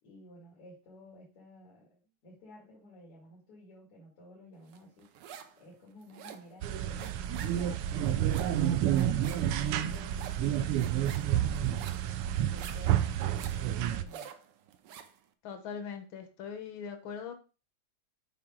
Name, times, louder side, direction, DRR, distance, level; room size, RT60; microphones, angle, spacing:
voice 1, 0.0-11.6 12.0-14.3, equal, 85° left, -5 dB, 3.3 m, -53 dB
sound 1, 4.7-5.6 5.9-15.2, right 8 dB, 65° right, 1.2 m, -48 dB
sound 2, 6.6-14.0, right 11 dB, 85° right, 1.6 m, -29 dB
voice 2, 15.4-17.3, left 6 dB, 65° left, 7 dB, 1.9 m, -41 dB
7.6 x 4.9 x 3.7 m, 0.32 s
omnidirectional pair, 2.4 m